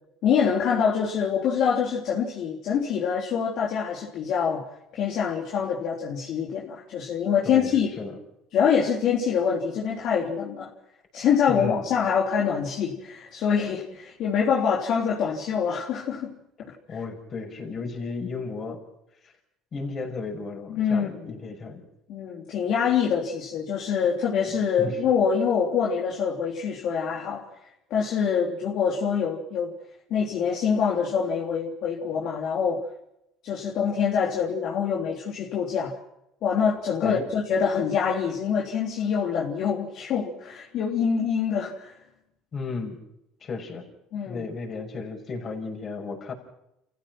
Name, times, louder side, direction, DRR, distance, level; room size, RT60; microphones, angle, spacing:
voice 1, 0.2-4.6 4.9-7.9 8.5-10.7 11.1-16.3 20.7-21.3 22.1-27.5 27.9-29.7 30.1-32.8 33.4-36.0 36.4-42.0 44.1-44.5, left 7 dB, 60° left, -3 dB, 3.4 m, -25 dB
voice 2, 7.4-8.2 11.5-11.8 16.9-18.8 19.2-19.3 19.7-21.8 24.4-25.0 37.0-37.3 42.5-43.0 43.4-43.9 44.3-46.3, left 4 dB, 40° left, 1 dB, 6.3 m, -34 dB
29.5 x 15.5 x 6.1 m, 0.82 s
cardioid pair, 110°, 0 cm